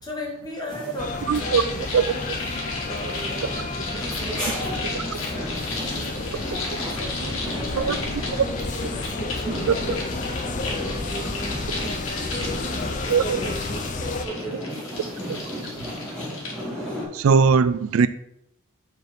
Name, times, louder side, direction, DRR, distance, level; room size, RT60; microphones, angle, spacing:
voice 1, 0.0-2.2 2.9-3.5 3.9-5.4 5.8-6.3 6.9-10.0 10.6-11.6 12.2-15.2, equal, 20° left, 1.7 m, -37 dB
sound 1, 0.7-17.0, equal, 5° left, 1.9 m, -35 dB
sound 2, 1.0-14.3, left 3 dB, 35° left, 0.5 m, -32 dB
sound 3, 1.3-16.6, left 3 dB, 65° left, 2.1 m, -35 dB
voice 2, 1.3-1.6 1.9-2.4 4.9-5.2 7.7-8.0 9.7-9.8 13.1-13.4 15.3-15.4 17.1-18.1, right 6 dB, 70° right, 0.3 m, -20 dB
5.0 x 4.6 x 6.0 m
head